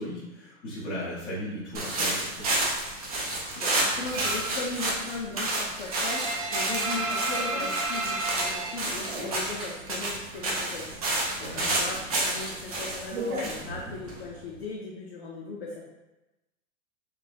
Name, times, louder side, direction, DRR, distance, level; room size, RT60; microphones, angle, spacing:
voice 1, 0.0-2.5 11.4-12.1 13.6-13.9, equal, 10° left, -9 dB, 0.9 m, -37 dB
sound 1, 1.7-14.5, right 2 dB, 30° right, 0.4 m, -30 dB
voice 2, 3.6-15.8, left 3 dB, 50° left, -3 dB, 0.5 m, -38 dB
sound 2, 4.1-4.6 4.9-9.8 10.1-11.1 11.4-14.2, right 2 dB, 45° right, 1.0 m, -33 dB
5.5 x 2.2 x 2.6 m, 1.0 s
supercardioid pair, 175°, 41 cm